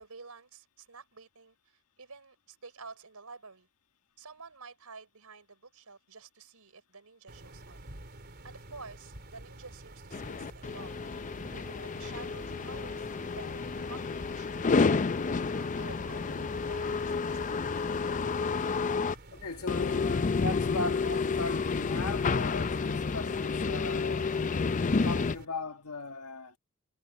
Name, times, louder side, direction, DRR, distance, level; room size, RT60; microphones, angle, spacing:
voice 1, 0.0-3.7 4.2-7.8 8.4-11.0 11.5-14.9 15.5-17.1, right 4 dB, 80° right, 4.5 m, -50 dB
sound 1, 7.3-25.5, right 1 dB, 45° right, 3.8 m, -50 dB
sound 2, 10.1-19.2 19.7-25.4, left 4 dB, 35° left, 0.5 m, -30 dB
voice 2, 19.3-24.3 25.0-26.5, left 3 dB, 85° left, 1.5 m, -38 dB
head